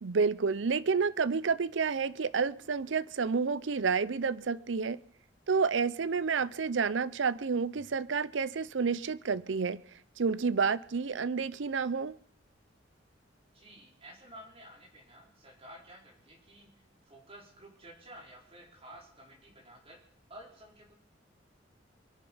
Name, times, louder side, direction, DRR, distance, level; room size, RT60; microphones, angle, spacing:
voice 1, 0.0-5.0 5.5-9.8 10.2-12.2, right 5 dB, 75° right, 18 dB, 0.6 m, -30 dB
voice 2, 13.5-20.0 20.3-20.9, right 1 dB, 30° right, -2 dB, 4.9 m, -52 dB
23.5 x 10.0 x 5.6 m, 0.66 s
head